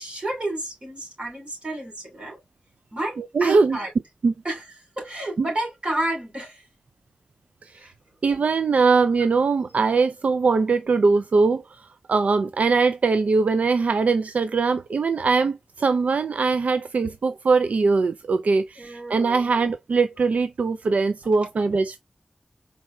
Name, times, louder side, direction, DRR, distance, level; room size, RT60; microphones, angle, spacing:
voice 1, 0.0-2.4 2.9-3.9 4.4-4.6 5.0-6.6 7.7-7.9 18.8-19.4, right 1 dB, 50° right, 2.9 m, -30 dB
voice 2, 3.2-3.8 4.2-4.3 5.4-5.5 7.6-7.9 8.2-22.0, right 4 dB, 80° right, 0.3 m, -21 dB
4.6 x 4.1 x 2.2 m
wide cardioid pair, 60°, 2 cm